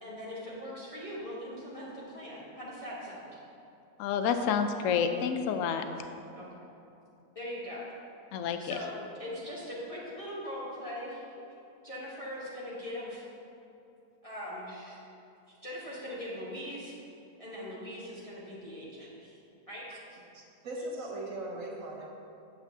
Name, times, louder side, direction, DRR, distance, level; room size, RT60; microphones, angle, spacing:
voice 1, 0.0-3.4 6.3-6.7 7.3-7.8 8.6-11.2 11.8-13.2 14.2-15.0 15.6-16.9 17.4-19.4 19.7-19.8, equal, 25° left, -8 dB, 1.2 m, -41 dB
voice 2, 4.0-5.8 8.3-8.7, left 7 dB, 70° left, 7 dB, 0.8 m, -29 dB
voice 3, 20.3-22.1, right 1 dB, 65° right, -1 dB, 1.2 m, -39 dB
8.1 x 7.8 x 2.7 m, 2.8 s
omnidirectional pair, 1.6 m